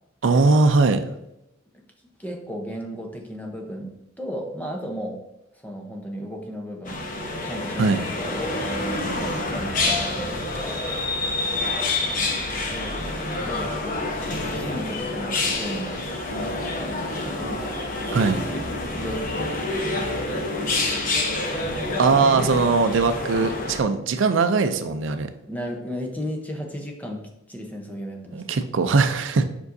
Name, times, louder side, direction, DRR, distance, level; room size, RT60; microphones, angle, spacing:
voice 1, 0.2-1.1 7.8-8.0 18.1-18.4 22.0-25.3 28.3-29.4, right 4 dB, 70° right, 9 dB, 0.4 m, -20 dB
voice 2, 2.2-3.9 4.2-5.2 5.6-8.6 9.2-10.9 12.7-12.9 13.4-14.1 14.4-18.2 18.5-19.5 19.8-21.0 25.5-28.4, equal, 10° left, 2 dB, 0.8 m, -35 dB
sound 1, 6.9-23.8, left 2 dB, 40° left, 1.0 m, -28 dB
sound 2, 13.9-22.6, left 2 dB, 60° left, 0.5 m, -38 dB
7.1 x 5.3 x 2.7 m, 0.87 s
head